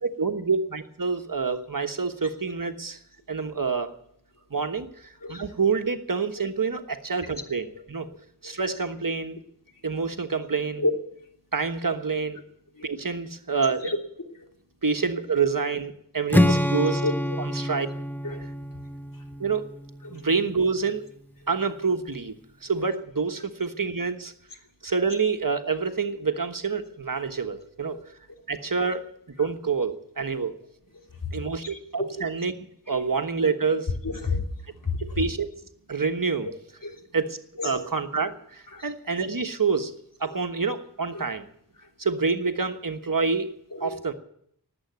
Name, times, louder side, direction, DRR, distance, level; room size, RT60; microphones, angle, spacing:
voice 1, 0.0-3.0 3.3-3.9 4.5-8.1 8.4-9.4 9.8-10.8 11.5-12.4 12.8-13.9 14.8-17.0 17.4-17.9 19.4-19.6 20.1-21.0 21.5-22.3 22.6-24.3 24.8-28.0 28.5-29.0 29.4-30.6 31.3-32.5 32.9-33.9 35.2-35.5 35.9-36.5 37.1-39.9 40.2-41.5 42.0-43.5 43.8-44.1, right 5 dB, 55° right, 7 dB, 1.3 m, -27 dB
Strum, 16.3-20.4, left 1 dB, 5° left, 0.7 m, -26 dB
voice 2, 31.6-32.2 32.9-33.1 34.0-34.4 34.8-35.2 36.8-37.0 37.6-37.9 38.7-38.8 40.3-40.4 41.1-41.2 43.7-44.0, left 2 dB, 55° left, 2 dB, 3.1 m, -30 dB
18.5 x 8.2 x 9.4 m, 0.69 s
wide cardioid pair, 45°, 39 cm